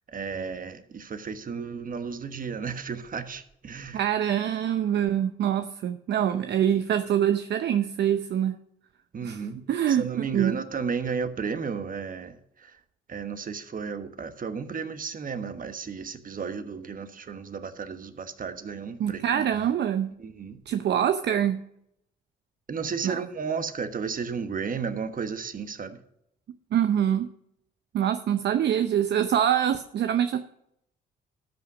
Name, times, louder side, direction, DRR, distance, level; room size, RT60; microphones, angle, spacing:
voice 1, 0.1-4.0 9.1-12.8 13.1-19.7 20.2-20.6 22.7-26.0, right 5 dB, 45° right, 1.4 m, -33 dB
voice 2, 3.9-8.5 9.2-9.4 9.7-10.6 19.0-20.1 20.7-21.6 23.0-23.2 26.7-27.3 27.9-30.4, right 9 dB, 60° right, 0.7 m, -25 dB
13.5 x 5.9 x 6.2 m
supercardioid pair, 60°, 20 cm